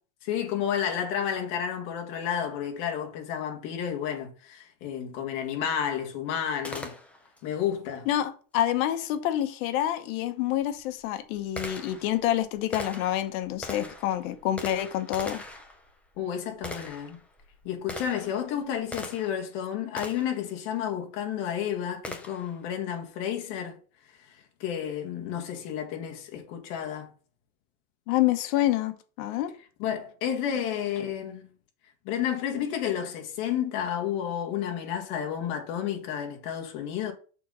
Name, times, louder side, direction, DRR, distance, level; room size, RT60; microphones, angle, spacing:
voice 1, 0.2-6.9 7.4-8.1 16.2-17.2 17.6-23.7 24.2-27.1 29.8-31.4 32.1-37.1, left 9 dB, 55° left, 1.9 m, -31 dB
Gunshot gunfire, 6.6-7.5 9.8-9.9 10.6-19.5 20.0-20.4 22.0-22.6, left 1 dB, 5° left, 0.4 m, -41 dB
voice 2, 8.1-15.4 28.1-29.5, left 12 dB, 90° left, 1.1 m, -27 dB
6.7 x 4.0 x 5.4 m
cardioid pair, 180°, 40 cm